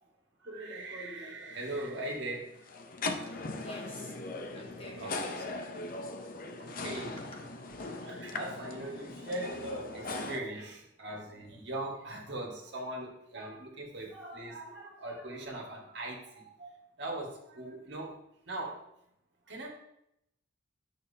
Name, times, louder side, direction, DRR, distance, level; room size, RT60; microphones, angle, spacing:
voice 1, 0.4-2.6 4.5-5.2 6.6-7.2 8.0-18.2 18.5-18.8 19.5-19.7, right 1 dB, 60° right, 0 dB, 1.7 m, -40 dB
sound 1, 1.5-10.4, left 3 dB, 45° left, 0.7 m, -40 dB
voice 2, 3.0-7.4, left 1 dB, 30° left, 0 dB, 1.2 m, -52 dB
10.0 x 6.4 x 2.8 m, 0.80 s
head